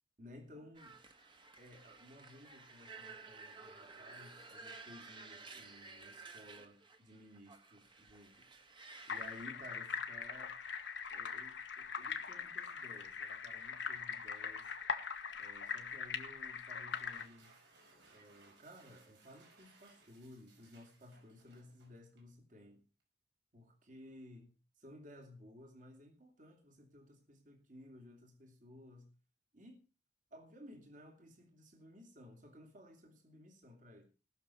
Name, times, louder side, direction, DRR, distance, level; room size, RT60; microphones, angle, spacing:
voice 1, 0.2-1.0 1.5-8.5 9.1-10.6 11.1-14.7 15.4-17.6 18.1-22.8 23.5-29.1 29.5-29.9 30.3-34.1, left 1 dB, 45° right, 3 dB, 2.9 m, -57 dB
sound 1, 0.7-9.4, right 3 dB, 25° right, 1.6 m, -54 dB
sound 2, 9.1-17.3, left 6 dB, 70° left, 1.4 m, -42 dB
sound 3, 16.8-22.4, right 3 dB, 70° right, 5.2 m, -65 dB
19.0 x 6.8 x 5.7 m, 0.35 s
head